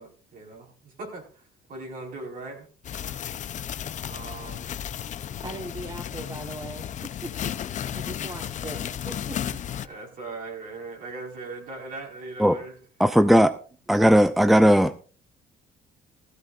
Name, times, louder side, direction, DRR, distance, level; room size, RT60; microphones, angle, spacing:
voice 1, 0.0-1.4 1.7-2.7 4.0-4.7 9.8-12.8, right 3 dB, 55° right, 0 dB, 4.8 m, -39 dB
sound 1, 2.8-9.9, left 9 dB, 45° left, 0.7 m, -34 dB
voice 2, 5.3-9.6 13.9-14.0, right 2 dB, 20° right, 5 dB, 1.2 m, -40 dB
voice 3, 13.0-13.5 13.9-15.0, equal, ahead, 11 dB, 0.6 m, -17 dB
15.5 x 15.0 x 2.5 m, 0.38 s
cardioid pair, 110°, 17 cm